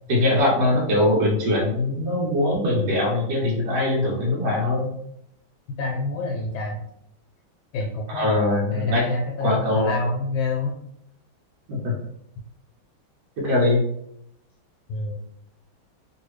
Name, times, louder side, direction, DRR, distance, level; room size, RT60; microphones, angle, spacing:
voice 1, 0.1-4.9 8.1-9.0 9.4-9.9 11.7-11.9 13.4-13.8, left 1 dB, 65° right, -4 dB, 1.4 m, -22 dB
voice 2, 5.8-6.8 7.7-8.4 8.7-10.7 14.9-15.2, left 3 dB, 85° left, -1 dB, 1.4 m, -27 dB
3.2 x 2.7 x 3.1 m, 0.76 s
omnidirectional pair, 2.1 m